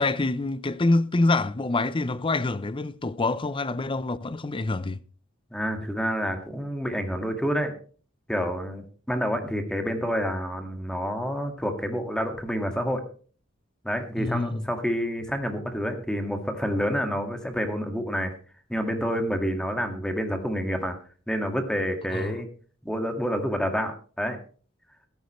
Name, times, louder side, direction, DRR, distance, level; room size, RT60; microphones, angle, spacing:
voice 1, 0.0-5.0 14.2-14.7 22.1-22.3, left 2 dB, 25° left, 0.6 m, -26 dB
voice 2, 5.5-7.7 8.3-13.0 13.8-18.3 18.7-21.0 21.3-22.5 22.8-24.4, equal, 5° left, 1.8 m, -28 dB
14.5 x 13.0 x 3.2 m
head